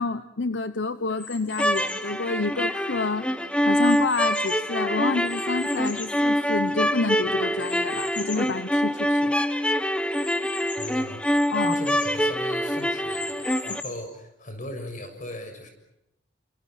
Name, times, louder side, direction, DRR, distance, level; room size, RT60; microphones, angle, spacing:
voice 1, 0.0-3.3 3.7-9.3 11.5-11.8 13.7-13.8, left 3 dB, 80° left, 12 dB, 1.0 m, -28 dB
sound 1, 1.2-2.1 2.8-4.8 5.2-6.9 7.6-8.5 9.0-9.1 9.3-9.4 10.1-12.2 12.8-14.1, left 3 dB, 25° left, 4.8 m, -40 dB
sound 2, 1.5-13.8, equal, 5° left, 1.3 m, -25 dB
voice 2, 10.8-11.2 11.6-15.7, left 1 dB, 45° left, 7 dB, 7.0 m, -38 dB
29.5 x 26.5 x 6.0 m, 0.83 s
head